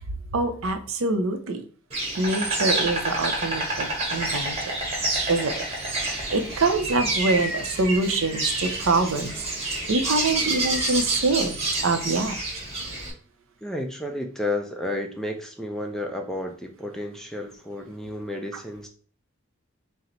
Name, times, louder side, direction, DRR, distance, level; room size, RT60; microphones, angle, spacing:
voice 1, 0.3-1.6 2.2-4.5 5.3-5.5 6.3-9.3 9.9-11.5 11.8-12.3, right 3 dB, 70° right, 7 dB, 0.6 m, -24 dB
Insect, 1.9-13.1, right 2 dB, 30° right, 1.0 m, -28 dB
voice 2, 13.6-18.9, left 1 dB, ahead, 3 dB, 0.4 m, -32 dB
4.2 x 2.1 x 3.8 m, 0.43 s
head